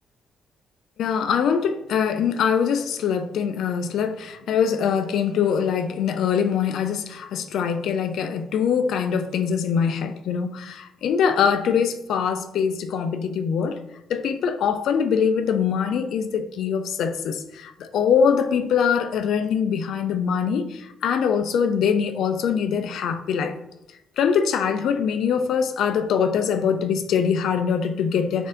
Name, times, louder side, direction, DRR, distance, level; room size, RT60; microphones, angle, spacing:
voice 1, 1.0-13.8 14.1-23.6 24.2-28.5, left 7 dB, 65° left, 0.3 m, -23 dB
4.2 x 2.5 x 3.7 m
cardioid pair, 165°, 0 cm